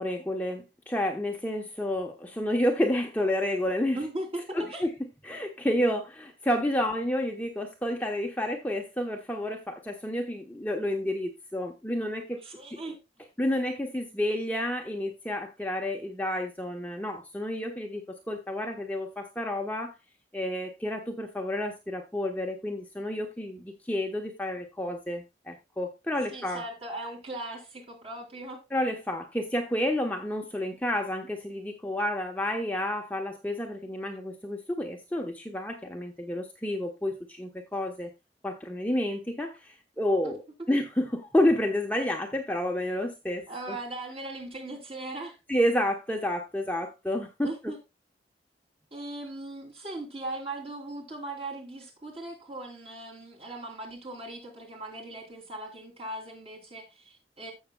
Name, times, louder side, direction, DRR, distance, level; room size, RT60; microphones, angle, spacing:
voice 1, 0.0-4.0 4.5-4.9 5.2-12.4 13.4-19.9 20.3-26.6 28.7-38.1 38.4-40.4 40.7-43.8 45.5-47.7, left 1 dB, 10° left, 1.0 m, -30 dB
voice 2, 3.9-4.8 12.4-13.0 26.3-28.6 40.2-40.3 40.6-40.8 43.5-45.4 47.4-47.8 48.9-57.5, right 2 dB, 35° right, 3.3 m, -39 dB
15.0 x 6.5 x 2.3 m
head